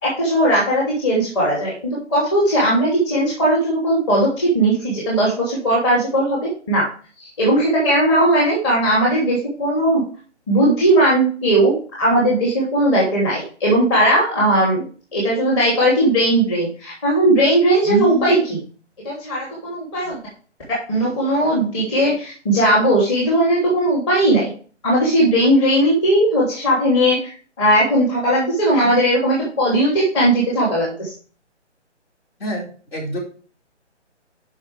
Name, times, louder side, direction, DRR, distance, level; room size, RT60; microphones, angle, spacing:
voice 1, 0.0-6.4 6.7-6.8 7.2-10.0 10.5-14.8 15.1-18.6 19.0-20.2 20.9-24.5 24.8-27.3 27.6-31.1, right 1 dB, 25° left, -5 dB, 2.7 m, -18 dB
voice 2, 32.4-33.2, equal, 55° left, -1 dB, 4.8 m, -28 dB
12.0 x 5.5 x 3.4 m, 0.39 s
figure-of-eight pair, 145°, 36 cm